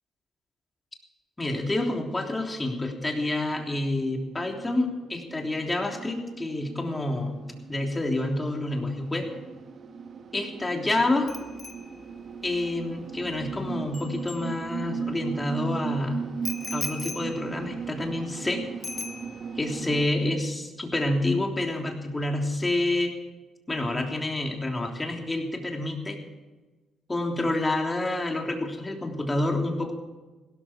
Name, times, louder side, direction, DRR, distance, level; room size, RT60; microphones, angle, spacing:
voice 1, 1.4-7.4 7.7-9.3 10.3-11.3 12.4-16.2 16.7-18.6 19.6-23.1 23.7-26.2 27.1-29.9, left 2 dB, 20° left, 1 dB, 3.3 m, -28 dB
sound 1, 4.1-20.1, right 6 dB, 55° right, 1.2 m, -38 dB
Bicycle bell, 11.3-15.1 16.4-18.5 18.8-19.7 20.0-20.3, left 4 dB, 35° left, 1.4 m, -40 dB
16.5 x 13.5 x 5.1 m, 1.2 s
cardioid pair, 90°, 0 cm